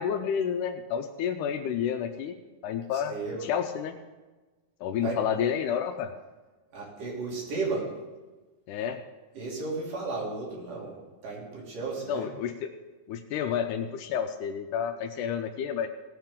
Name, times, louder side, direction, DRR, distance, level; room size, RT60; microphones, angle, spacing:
voice 1, 0.0-3.1 3.4-4.0 4.8-6.1 8.7-9.0 12.1-12.7 13.1-15.9, left 8 dB, 80° left, 6 dB, 2.1 m, -30 dB
voice 2, 2.9-3.5 5.0-5.2 6.7-7.9 9.3-12.3, right 3 dB, 75° right, -4 dB, 4.6 m, -34 dB
17.5 x 8.9 x 3.7 m, 1.2 s
omnidirectional pair, 3.8 m